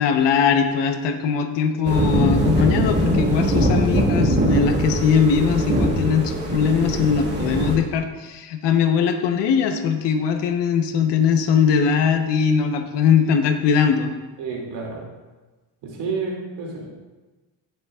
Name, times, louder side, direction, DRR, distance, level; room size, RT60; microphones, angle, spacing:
voice 1, 0.0-14.1, left 6 dB, 75° left, 6 dB, 1.0 m, -20 dB
sound 1, 1.8-7.8, right 1 dB, 25° right, 1.8 m, -21 dB
voice 2, 14.4-15.0 15.8-16.9, right 4 dB, 90° right, -1 dB, 2.6 m, -29 dB
17.0 x 6.9 x 2.4 m, 1.2 s
cardioid pair, 125°, 42 cm